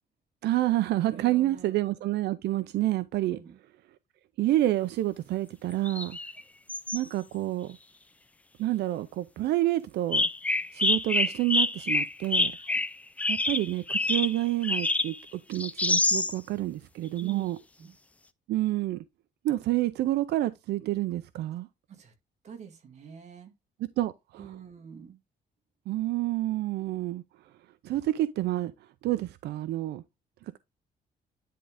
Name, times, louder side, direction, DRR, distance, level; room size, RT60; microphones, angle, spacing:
voice 1, 0.4-3.4 4.4-6.2 6.9-7.8 8.6-10.3 10.7-12.5 13.3-17.6 18.5-19.0 19.4-21.7 23.8-24.4 25.9-27.2 27.8-28.7 29.0-30.0 30.4-30.6, right 15 dB, 85° right, 0.5 m, -28 dB
voice 2, 1.1-1.8 3.3-3.6 6.2-6.3 12.5-12.8 17.2-18.0 21.9-22.1 22.4-23.5 24.4-25.2, right 8 dB, 40° right, 1.8 m, -47 dB
sound 1, 5.7-6.4 6.7-7.0 10.1-15.2 15.5-16.4 17.2-17.3, left 2 dB, 10° left, 0.3 m, -27 dB
10.0 x 3.7 x 3.4 m
cardioid pair, 160°, 17 cm